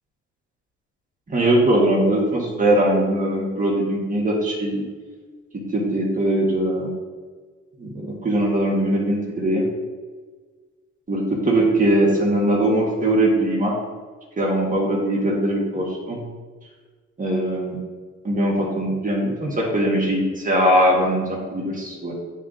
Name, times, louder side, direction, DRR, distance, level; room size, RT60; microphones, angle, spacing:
voice 1, 1.3-4.8 5.5-6.9 7.8-9.6 11.1-13.7 14.4-16.2 17.2-17.8 18.2-22.1, right 1 dB, 25° right, -3 dB, 1.5 m, -21 dB
9.9 x 3.6 x 2.6 m, 1.4 s
cardioid pair, 90°, 30 cm